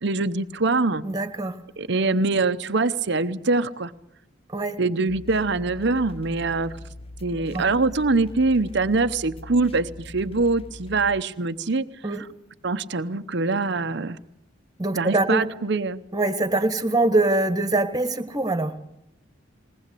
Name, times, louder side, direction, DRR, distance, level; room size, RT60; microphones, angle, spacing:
voice 1, 0.0-1.0 1.8-3.9 4.8-6.7 7.2-11.8 12.6-14.2 14.9-16.0, right 3 dB, 60° right, 11 dB, 0.9 m, -23 dB
voice 2, 1.0-1.6 4.5-4.8 7.5-7.6 12.0-12.3 14.8-15.5 16.1-18.7, right 2 dB, 20° right, 10 dB, 1.6 m, -23 dB
sound 1, 5.1-11.2, left 1 dB, 30° left, 0.9 m, -42 dB
21.0 x 19.0 x 8.4 m, 0.80 s
head